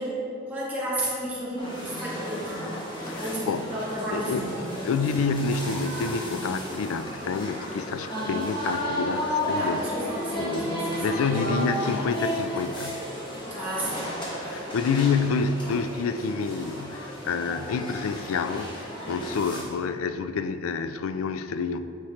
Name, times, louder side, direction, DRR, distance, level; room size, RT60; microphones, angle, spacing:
voice 1, 0.0-2.7 3.2-4.7 9.6-11.1 13.5-14.2, right 1 dB, 10° right, -9 dB, 1.6 m, -32 dB
sound 1, 1.6-19.6, equal, 20° left, 1.4 m, -33 dB
voice 2, 3.0-3.6 4.1-9.9 10.4-10.7 11.0-13.0 14.4-21.8, left 5 dB, 85° left, 11 dB, 0.3 m, -28 dB
8.8 x 5.0 x 3.2 m, 2.6 s
head